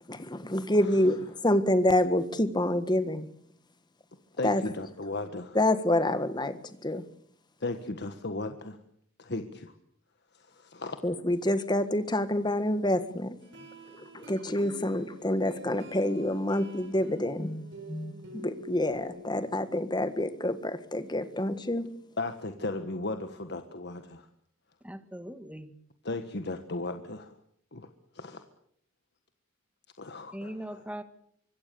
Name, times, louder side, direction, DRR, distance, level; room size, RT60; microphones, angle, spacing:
voice 1, 0.1-1.2 1.4-3.3 4.4-4.6 5.6-6.6 6.8-7.0 11.0-13.4 14.0-21.9, left 1 dB, 20° left, 11 dB, 1.7 m, -27 dB
voice 2, 4.4-5.6 7.6-8.8 9.2-9.7 10.3-11.0 22.2-24.3 26.0-27.3 27.7-27.9 28.1-28.4 30.0-30.8, left 2 dB, 60° left, 7 dB, 1.5 m, -36 dB
sound 1, 13.4-19.5, equal, 65° right, 6.0 m, -48 dB
voice 3, 24.8-25.7 30.3-31.0, right 1 dB, 5° right, 9 dB, 1.8 m, -40 dB
25.0 x 22.0 x 7.0 m, 0.68 s
head